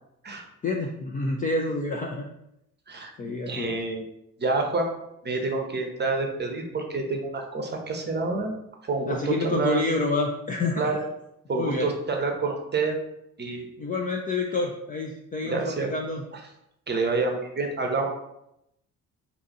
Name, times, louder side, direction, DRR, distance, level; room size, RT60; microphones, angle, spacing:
voice 1, 0.6-2.3 3.2-3.8 9.1-11.1 11.5-11.9 13.8-16.2, left 3 dB, 20° left, 1 dB, 0.3 m, -28 dB
voice 2, 2.9-4.1 4.4-4.9 5.2-8.6 8.8-9.9 10.8-11.0 11.5-13.0 13.4-13.7 15.4-15.9 16.9-18.1, right 3 dB, 25° right, 3 dB, 0.7 m, -28 dB
2.7 x 2.4 x 3.9 m, 0.82 s
hypercardioid pair, 50°, 44 cm